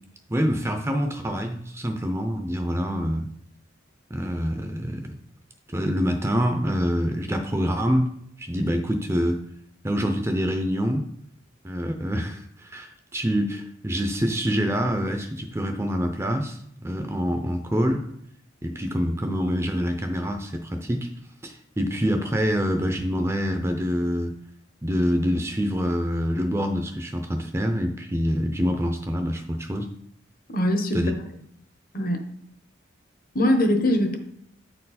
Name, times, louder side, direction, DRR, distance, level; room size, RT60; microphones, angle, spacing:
voice 1, 0.3-3.3 4.1-5.1 5.7-8.1 8.4-9.4 9.8-11.1 11.6-18.0 18.6-21.1 21.4-24.3 24.8-29.9 30.9-31.1, equal, 15° right, 5 dB, 0.6 m, -26 dB
voice 2, 30.5-31.0 31.9-32.2 33.3-34.2, left 1 dB, 45° left, 6 dB, 1.0 m, -22 dB
8.9 x 4.5 x 4.2 m, 0.69 s
head